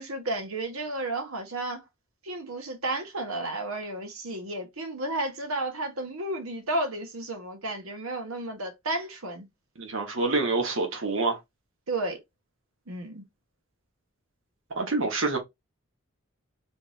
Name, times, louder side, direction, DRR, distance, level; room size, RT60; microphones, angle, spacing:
voice 1, 0.0-1.8 2.2-9.5 11.9-12.2 12.9-13.2, right 2 dB, 85° right, 1.3 m, -32 dB
voice 2, 9.8-11.4 14.7-15.4, right 3 dB, 65° right, 1.4 m, -27 dB
3.6 x 3.4 x 2.6 m
head